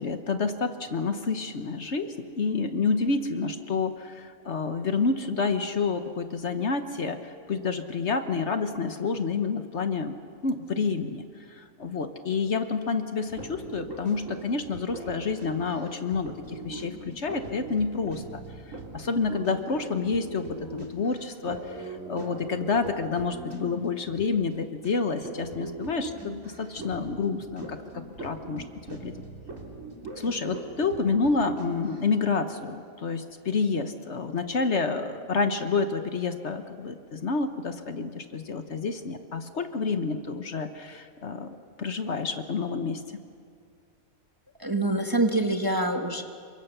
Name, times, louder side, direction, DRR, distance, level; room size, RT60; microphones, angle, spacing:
voice 1, 0.0-10.1 10.4-11.2 11.5-18.4 18.9-20.4 20.7-27.8 28.2-29.1 30.2-43.0, left 4 dB, 55° left, 8 dB, 1.4 m, -29 dB
sound 1, 13.3-24.5 24.8-24.9 25.2-32.0, right 3 dB, 65° right, 3.6 m, -41 dB
voice 2, 44.6-46.2, right 2 dB, 15° right, 4 dB, 1.3 m, -25 dB
29.0 x 23.5 x 6.8 m, 2.2 s
omnidirectional pair, 1.5 m